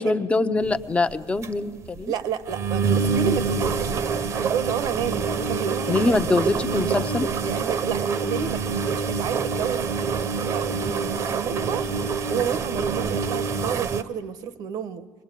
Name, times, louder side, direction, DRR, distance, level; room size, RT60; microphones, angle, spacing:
voice 1, 0.0-2.1 5.9-7.3, left 3 dB, 20° left, 10 dB, 0.9 m, -23 dB
sound 1, 0.6-0.8 1.1-1.2 1.4-1.5 1.8-2.0 2.5-14.0, right 5 dB, 50° right, 1.0 m, -26 dB
voice 2, 2.1-4.0 4.4-6.2 7.4-11.9 12.3-15.1, right 7 dB, 70° right, 13 dB, 1.2 m, -30 dB
24.5 x 20.0 x 9.2 m, 1.5 s
cardioid pair, 115°, 7 cm